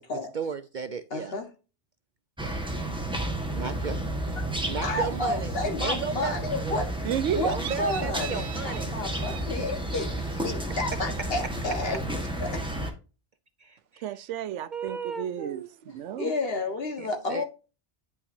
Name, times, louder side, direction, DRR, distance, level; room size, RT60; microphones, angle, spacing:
voice 1, 0.3-1.4 2.4-2.6 3.5-4.0 4.7-5.5 5.8-6.8 7.4-8.9 13.6-14.1 14.7-15.7 17.0-17.4, right 5 dB, 55° right, 0.6 m, -34 dB
voice 2, 1.1-1.5 4.4-4.5 4.8-6.9 7.3-12.0 12.4-12.6 16.2-17.4, left 2 dB, 55° left, 1.6 m, -31 dB
sound 1, 2.4-12.9, right 1 dB, 5° right, 1.3 m, -32 dB
voice 3, 7.0-8.8 9.1-9.5 14.0-16.3, right 10 dB, 80° right, 0.9 m, -33 dB
9.4 x 5.7 x 2.7 m
omnidirectional pair, 1.2 m